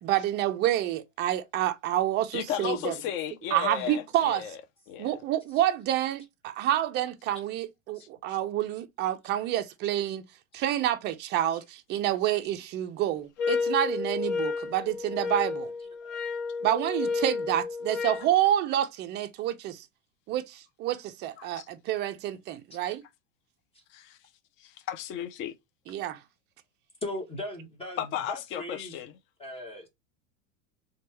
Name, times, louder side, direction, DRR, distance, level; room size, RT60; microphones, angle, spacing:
voice 1, 0.0-3.0 3.5-4.4 5.0-10.2 10.5-15.7 16.6-19.9 20.3-23.0 25.9-26.2, right 12 dB, 25° right, 0.4 m, -28 dB
voice 2, 2.3-4.6 4.9-5.1 21.4-21.7 23.9-24.2 24.6-25.5 28.0-29.1, left 10 dB, 30° left, 0.4 m, -34 dB
sound 1, 13.4-18.3, left 4 dB, 60° left, 0.9 m, -31 dB
voice 3, 27.0-29.0 29.4-29.9, left 1 dB, 15° left, 1.0 m, -39 dB
3.1 x 2.3 x 4.2 m
supercardioid pair, 125°, 40 cm